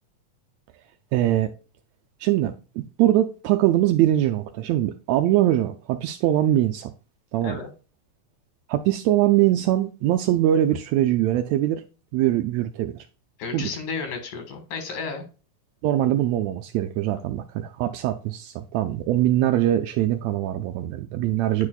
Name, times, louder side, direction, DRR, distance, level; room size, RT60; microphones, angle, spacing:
voice 1, 1.1-1.5 2.2-6.9 7.3-7.6 8.7-11.8 12.1-13.1 13.5-13.7 15.8-21.7, right 13 dB, 80° right, 1.6 m, -22 dB
voice 2, 13.4-15.2, left 5 dB, 90° left, 3.1 m, -32 dB
9.5 x 4.8 x 2.3 m
omnidirectional pair, 3.5 m